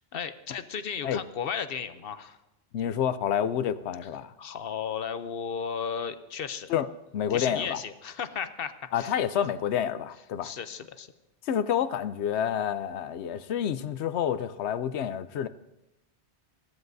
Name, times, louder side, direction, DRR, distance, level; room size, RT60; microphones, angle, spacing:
voice 1, 0.0-2.4 4.4-6.7 7.3-9.2 10.4-11.1, left 7 dB, 65° left, 0.9 m, -35 dB
voice 2, 2.7-4.3 6.7-6.9 7.1-7.8 8.9-10.5 11.5-15.5, left 9 dB, 90° left, 0.9 m, -28 dB
20.5 x 15.0 x 2.7 m
omnidirectional pair, 1.1 m